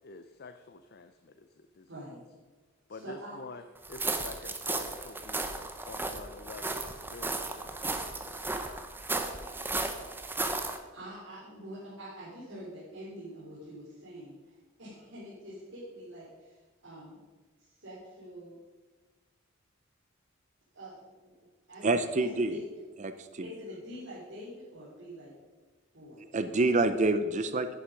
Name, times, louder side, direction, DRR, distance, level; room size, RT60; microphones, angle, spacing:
voice 1, 0.0-2.0 2.9-5.5 5.9-8.4, left 3 dB, 50° left, 9 dB, 0.6 m, -48 dB
voice 2, 1.9-2.2 2.9-3.4 10.5-17.2 17.6-18.6 20.7-21.9 22.2-22.6 23.4-25.3 25.9-26.3, equal, 75° right, -9 dB, 3.9 m, -46 dB
sound 1, 3.8-10.8, right 2 dB, 10° right, 0.8 m, -35 dB
voice 3, 21.8-22.6 23.0-23.5 26.3-27.7, right 2 dB, 35° right, 10 dB, 0.5 m, -27 dB
10.5 x 10.0 x 5.2 m, 1.3 s
head